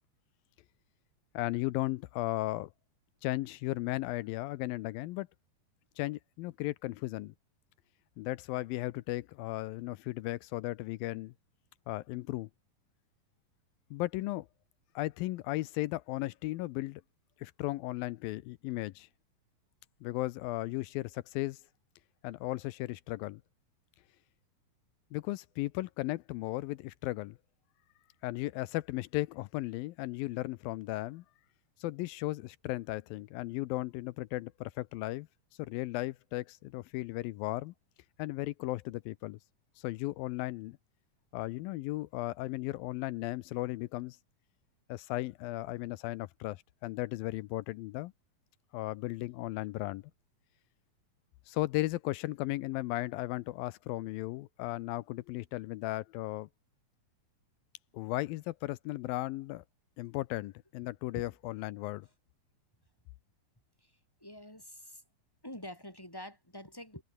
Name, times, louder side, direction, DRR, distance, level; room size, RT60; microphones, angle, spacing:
voice 1, 1.3-2.7 3.2-5.3 6.0-7.3 8.2-11.3 11.9-12.5 13.9-14.5 15.0-17.0 17.4-19.1 20.0-21.6 22.2-23.4 25.1-27.4 28.2-31.2 31.8-35.3 35.6-37.7 38.2-39.4 39.8-40.8 41.3-44.2 44.9-48.1 48.7-50.0 51.5-56.5 57.9-59.6 60.0-62.1, left 18 dB, 80° left, 2.4 m, -36 dB
voice 2, 63.8-65.0 65.4-67.0, left 1 dB, 5° left, 7.2 m, -46 dB
omnidirectional pair, 4.2 m